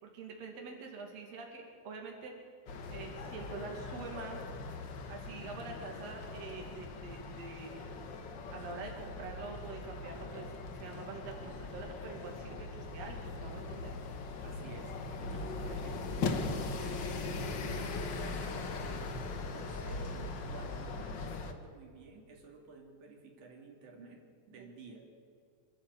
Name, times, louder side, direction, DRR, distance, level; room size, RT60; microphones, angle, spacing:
voice 1, 0.0-2.3 2.9-4.4 5.1-8.2 8.5-13.9 24.6-24.7 24.9-25.0, right 4 dB, 60° right, 1 dB, 3.4 m, -45 dB
sound 1, 2.7-21.5, left 3 dB, 50° left, 1.6 m, -40 dB
voice 2, 14.4-16.2 16.8-24.2 24.5-25.0, right 3 dB, 80° right, 2 dB, 4.1 m, -52 dB
26.5 x 12.5 x 8.4 m, 2.4 s
omnidirectional pair, 3.4 m